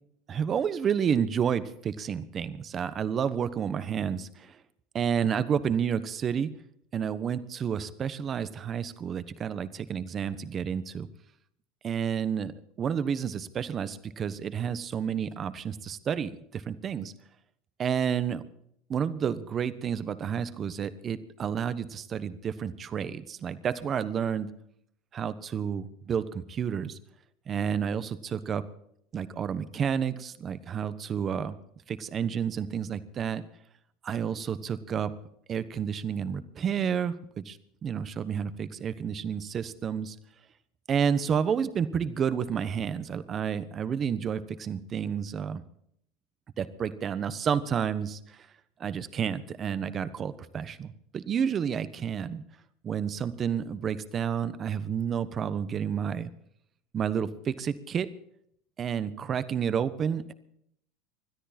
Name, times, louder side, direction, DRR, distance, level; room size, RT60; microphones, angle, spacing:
voice 1, 0.3-4.6 4.9-6.5 6.9-11.1 11.8-12.5 12.8-17.1 17.8-18.4 18.9-24.5 25.1-27.0 27.5-28.6 29.1-31.5 31.9-33.4 34.0-35.1 35.5-40.2 40.9-45.6 46.6-48.5 48.8-52.4 52.8-56.3 56.9-58.1 58.8-60.3, right 7 dB, 30° right, 14 dB, 1.1 m, -30 dB
21.0 x 13.0 x 4.3 m, 0.70 s
supercardioid pair, 135°, 0 cm